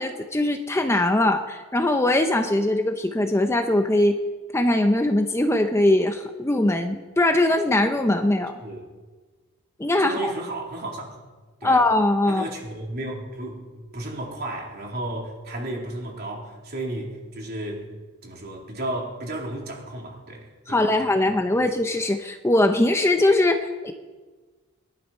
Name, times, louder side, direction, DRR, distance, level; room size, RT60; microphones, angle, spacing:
voice 1, 0.0-4.2 4.5-8.6 9.8-10.3 11.6-12.4 20.7-23.9, left 1 dB, 15° left, 6 dB, 0.7 m, -21 dB
voice 2, 10.0-11.2 11.6-11.9 12.2-17.9 18.2-21.0, right 1 dB, 50° right, -1 dB, 3.7 m, -33 dB
21.5 x 12.0 x 5.6 m, 1.3 s
head